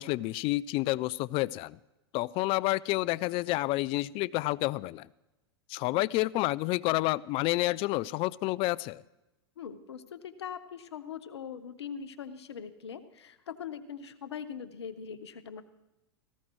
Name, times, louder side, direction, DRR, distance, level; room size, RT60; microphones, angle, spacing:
voice 1, 0.0-1.8 2.1-5.1 5.7-9.0, left 19 dB, 45° left, 22 dB, 0.4 m, -29 dB
voice 2, 9.6-15.6, left 7 dB, 85° left, 13 dB, 1.0 m, -41 dB
18.0 x 15.0 x 3.1 m, 0.99 s
hypercardioid pair, 105°, 14 cm